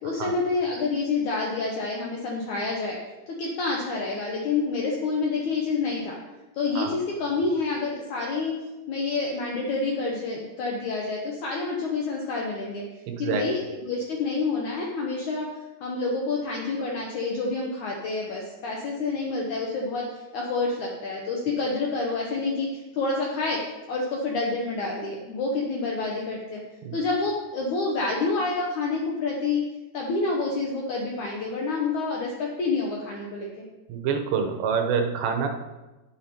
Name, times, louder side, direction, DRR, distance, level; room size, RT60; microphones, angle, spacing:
voice 1, 0.0-3.0 3.3-6.2 6.5-8.5 8.9-12.8 13.2-15.5 15.8-23.6 23.9-26.6 26.9-29.6 29.9-33.6, left 3 dB, 75° left, -2 dB, 1.8 m, -28 dB
voice 2, 13.1-13.4 26.9-27.0 33.9-35.5, right 6 dB, 85° right, 6 dB, 3.1 m, -26 dB
9.9 x 6.9 x 4.4 m, 1.1 s
omnidirectional pair, 4.8 m